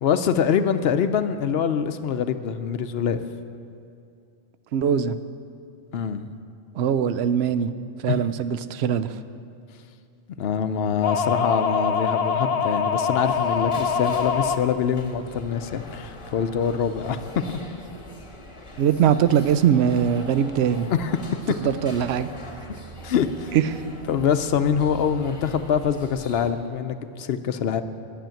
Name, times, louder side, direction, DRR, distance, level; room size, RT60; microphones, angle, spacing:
voice 1, 0.0-3.2 5.9-6.3 8.1-8.2 10.4-17.2 17.5-17.6 20.9-21.2 23.0-23.5 24.1-27.8, left 7 dB, 70° left, 10 dB, 0.8 m, -24 dB
voice 2, 4.7-5.2 6.7-7.7 8.0-9.1 18.8-20.9 21.6-22.3 23.5-23.8, right 8 dB, 75° right, 12 dB, 0.8 m, -21 dB
sound 1, 11.0-14.6, left 6 dB, 50° left, 0.5 m, -24 dB
sound 2, 13.2-26.5, left 1 dB, 30° left, 1.2 m, -42 dB
12.0 x 7.0 x 9.0 m, 2.4 s
omnidirectional pair, 1.1 m